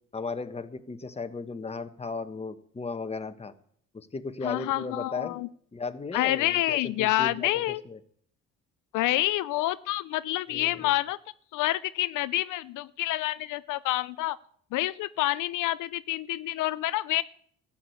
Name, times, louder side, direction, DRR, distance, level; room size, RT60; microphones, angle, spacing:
voice 1, 0.1-3.5 3.9-5.4 5.7-8.0 10.5-10.9, left 4 dB, 20° left, 10 dB, 1.1 m, -36 dB
voice 2, 4.4-5.5 6.1-7.8 8.9-11.2 11.5-14.4 14.7-17.2, left 16 dB, 85° left, 16 dB, 0.5 m, -28 dB
14.0 x 8.9 x 7.9 m, 0.62 s
cardioid pair, 90°, 30 cm